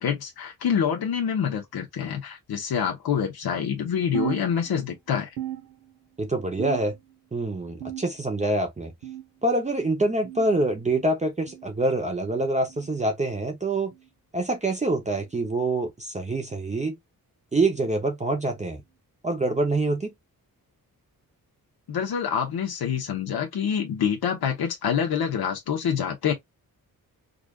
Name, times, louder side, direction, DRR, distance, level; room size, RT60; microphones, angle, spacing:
voice 1, 0.0-5.3 21.9-26.3, left 8 dB, 85° left, 1.0 m, -26 dB
sound 1, 4.1-5.0 5.4-6.2 6.6-7.2 7.8-8.4 9.0-9.4 10.2-10.5 11.5-11.7 12.7-12.9 13.9-14.1 15.1-15.3 16.3-16.5 17.6-17.7 18.8-18.9, right 12 dB, 90° right, 1.2 m, -36 dB
voice 2, 6.2-7.0 7.3-8.9 9.4-13.9 14.3-17.0 17.5-18.8 19.2-20.1, right 2 dB, 20° right, 0.7 m, -25 dB
5.0 x 2.4 x 2.3 m
wide cardioid pair, 165°, 37 cm